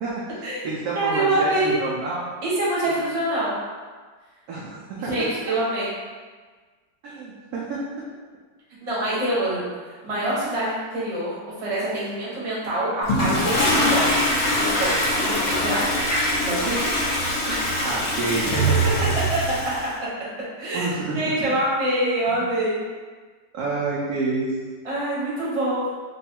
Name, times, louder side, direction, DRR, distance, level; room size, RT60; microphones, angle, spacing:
voice 1, 0.0-2.3 4.5-5.1 7.0-7.9 10.2-10.4 17.8-18.5 20.7-21.2 22.3-22.5 23.5-24.5, right 3 dB, 70° right, -6 dB, 1.0 m, -29 dB
voice 2, 0.9-1.7 2.4-3.5 5.0-5.9 8.8-14.2 14.6-17.0 17.5-17.9 18.8-19.5 19.8-20.1 20.6-20.9 21.1-22.8 24.8-25.9, right 1 dB, 25° right, -8 dB, 0.9 m, -25 dB
Toilet flush, 13.0-19.9, equal, 60° left, 1.1 m, -23 dB
3.1 x 2.3 x 4.3 m, 1.4 s
omnidirectional pair, 1.9 m